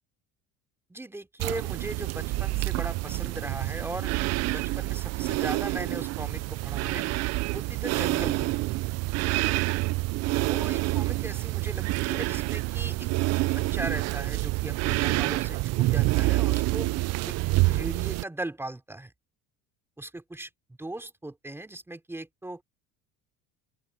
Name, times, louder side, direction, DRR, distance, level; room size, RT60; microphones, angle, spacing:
voice 1, 0.9-4.1 4.5-7.0 7.5-8.5 10.3-13.1 13.5-16.9 17.2-17.3 17.7-19.1 20.0-20.5 20.8-22.6, right 2 dB, 10° right, 3.3 m, -38 dB
sound 1, 1.4-18.2, right 20 dB, 55° right, 0.5 m, -27 dB
open air
cardioid pair, 120°, 31 cm